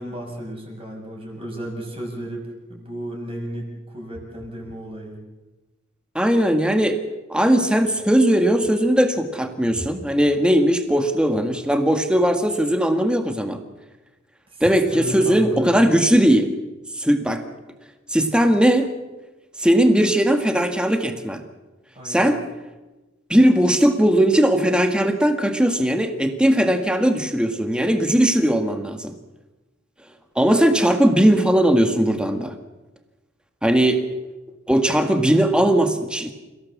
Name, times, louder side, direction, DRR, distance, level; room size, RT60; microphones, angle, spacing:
voice 1, 0.0-5.2 14.5-14.6 14.9-15.8 21.9-22.3, right 1 dB, 25° right, 0 dB, 6.3 m, -33 dB
voice 2, 6.2-7.0 7.3-13.6 14.6-16.5 17.0-17.4 18.1-18.9 19.6-21.4 22.0-22.4 23.3-29.2 30.4-32.5 33.6-34.0 34.7-36.3, right 1 dB, 5° right, 6 dB, 1.8 m, -18 dB
29.0 x 16.5 x 7.3 m, 1.1 s
head